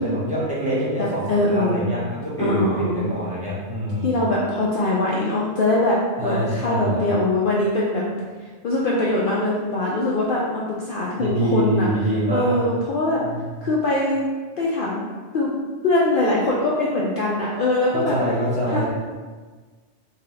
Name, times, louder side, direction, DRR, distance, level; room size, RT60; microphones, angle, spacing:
voice 1, 0.0-1.2 1.5-4.1 6.2-7.1 11.2-12.7 13.2-13.5 17.9-18.9, right 1 dB, 5° right, -10 dB, 1.1 m, -25 dB
voice 2, 1.3-1.9 2.4-3.0 4.0-8.0 8.6-11.9 12.3-13.2 13.6-14.2 14.6-15.0 15.3-15.5 15.8-18.2 18.7-18.8, left 2 dB, 60° left, -5 dB, 0.6 m, -22 dB
3.7 x 2.8 x 3.2 m, 1.4 s
omnidirectional pair, 1.2 m